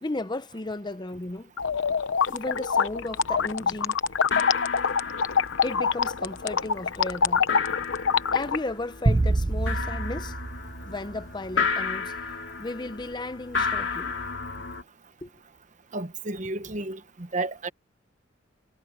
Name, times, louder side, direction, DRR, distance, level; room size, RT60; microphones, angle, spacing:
voice 1, 0.0-1.5 2.3-4.0 5.6-7.5 8.3-10.4 10.8-12.1 12.6-14.1 15.2-15.3, left 2 dB, 20° left, 0.7 m, -34 dB
sound 1, 1.6-8.6, left 6 dB, 85° left, 0.8 m, -25 dB
sound 2, 1.6-1.8 2.0-2.6 2.9-3.5 3.8-3.9 4.2-14.8, left 5 dB, 70° left, 2.6 m, -33 dB
sound 3, 9.0-11.5, right 2 dB, 20° right, 0.3 m, -26 dB
voice 2, 15.9-17.7, right 2 dB, 40° right, 1.1 m, -32 dB
head